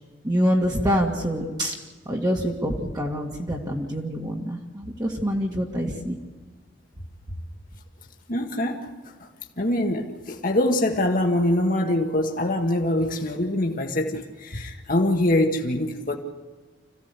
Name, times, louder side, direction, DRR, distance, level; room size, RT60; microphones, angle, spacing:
voice 1, 0.2-1.8 2.1-6.2, equal, 20° right, -2 dB, 2.1 m, -25 dB
voice 2, 8.3-8.9 9.6-16.2, left 1 dB, 50° left, 2 dB, 1.8 m, -24 dB
26.5 x 16.0 x 8.3 m, 1.5 s
head